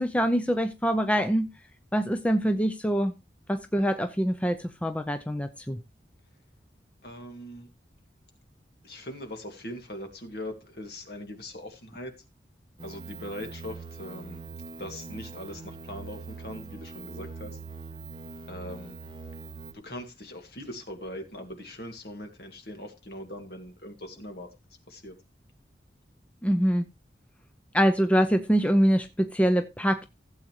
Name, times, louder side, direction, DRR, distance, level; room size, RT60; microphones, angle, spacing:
voice 1, 0.0-1.5 1.9-3.1 3.5-5.8 26.4-26.9 27.7-30.1, equal, 5° left, 0.6 m, -24 dB
voice 2, 7.0-7.7 8.8-12.1 12.8-14.4 14.8-17.6 18.5-19.0 19.8-24.5 24.9-25.1, left 1 dB, 60° left, 2.2 m, -40 dB
sound 1, 12.8-19.7, right 4 dB, 25° right, 1.5 m, -42 dB
15.5 x 7.9 x 3.0 m
head